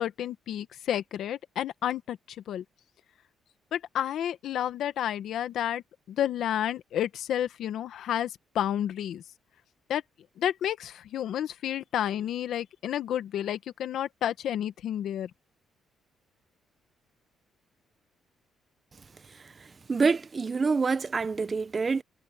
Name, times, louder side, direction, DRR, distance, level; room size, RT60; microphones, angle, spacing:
voice 1, 0.0-2.2 2.5-2.6 3.7-5.8 6.1-8.3 8.5-9.2 9.9-10.0 10.4-15.3, left 10 dB, 75° left, 1.4 m, -30 dB
voice 2, 19.9-22.0, right 4 dB, 35° right, 0.7 m, -26 dB
cardioid pair, 90°, 0 cm